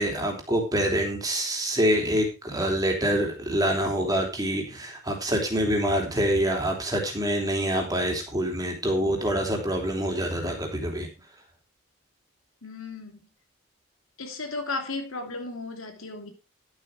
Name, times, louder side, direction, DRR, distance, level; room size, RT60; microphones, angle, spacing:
voice 1, 0.0-11.1, equal, 15° right, 3.1 m, -26 dB
voice 2, 12.6-13.3 14.2-16.3, left 3 dB, 75° left, 2.8 m, -35 dB
12.0 x 8.2 x 4.9 m
head